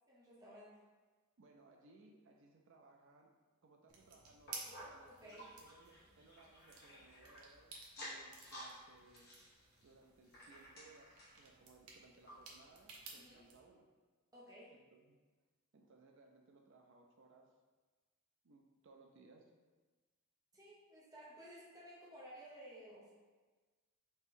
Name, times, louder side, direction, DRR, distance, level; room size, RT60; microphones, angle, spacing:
voice 1, 0.1-0.8 5.1-5.5 13.1-13.5 14.3-14.8 20.5-23.1, equal, 15° right, -7 dB, 0.8 m, -56 dB
voice 2, 1.4-3.3 3.6-9.3 9.8-13.9 14.7-15.2 15.7-17.5 18.4-19.5, right 3 dB, 60° right, 2 dB, 0.4 m, -64 dB
sound 1, 3.9-13.6, right 4 dB, 80° right, 0.8 m, -56 dB
sound 2, 4.5-7.5 7.8-8.7 9.1-11.4 11.9-12.0 12.3-12.4 13.0-13.1, equal, 45° left, 1.3 m, -54 dB
4.2 x 3.0 x 3.7 m, 1.3 s
head